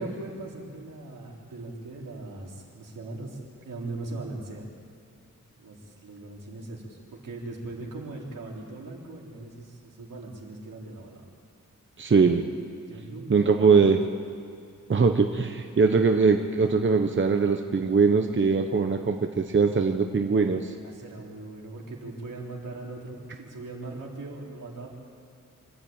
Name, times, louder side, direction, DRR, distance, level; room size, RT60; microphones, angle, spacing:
voice 1, 0.0-3.4 3.6-4.6 5.6-11.2 12.9-14.0 20.8-24.9, right 2 dB, 85° right, -2 dB, 4.0 m, -40 dB
voice 2, 12.0-12.5 13.3-14.0 14.9-20.7, right 5 dB, 40° right, 5 dB, 1.0 m, -21 dB
25.0 x 12.5 x 8.9 m, 2.5 s
wide cardioid pair, 90°, 31 cm